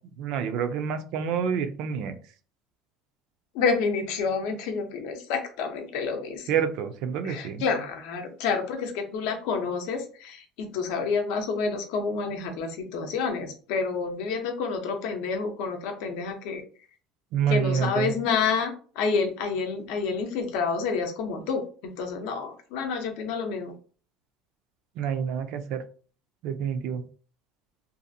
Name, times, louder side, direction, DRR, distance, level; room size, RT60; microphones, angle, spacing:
voice 1, 0.2-2.2 6.5-7.6 17.3-18.1 25.0-25.8 26.4-27.0, right 7 dB, 55° right, 9 dB, 0.3 m, -28 dB
voice 2, 3.5-6.5 7.2-16.6 17.5-23.7, left 5 dB, 65° left, 5 dB, 0.6 m, -29 dB
2.6 x 2.4 x 2.6 m, 0.40 s
cardioid pair, 170°, 0 cm